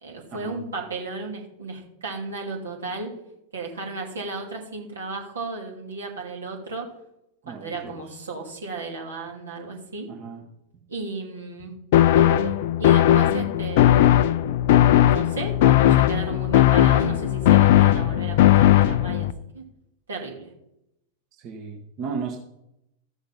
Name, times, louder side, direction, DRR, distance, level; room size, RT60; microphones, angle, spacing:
voice 1, 0.0-3.1 3.5-6.9 7.5-10.1 10.9-11.7 12.1-14.3 15.0-19.6 20.1-20.5, right 3 dB, 70° right, 0 dB, 2.7 m, -34 dB
voice 2, 7.4-8.0 10.1-10.4 21.4-22.4, right 5 dB, 35° right, 2 dB, 1.4 m, -34 dB
sound 1, 11.9-19.3, left 12 dB, 50° left, 0.5 m, -17 dB
14.0 x 6.3 x 5.7 m, 0.84 s
figure-of-eight pair, 90°, 0 cm